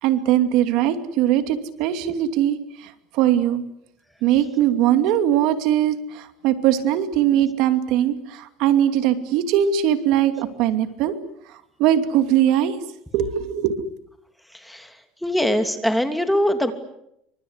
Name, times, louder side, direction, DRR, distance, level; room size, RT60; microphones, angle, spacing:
voice 1, 0.0-3.6 4.2-11.1 11.8-12.8 13.1-13.8, right 11 dB, 70° right, 9 dB, 2.6 m, -20 dB
voice 2, 14.5-16.7, equal, ahead, 8 dB, 2.9 m, -23 dB
29.0 x 25.0 x 8.1 m, 0.78 s
cardioid pair, 130°, 0 cm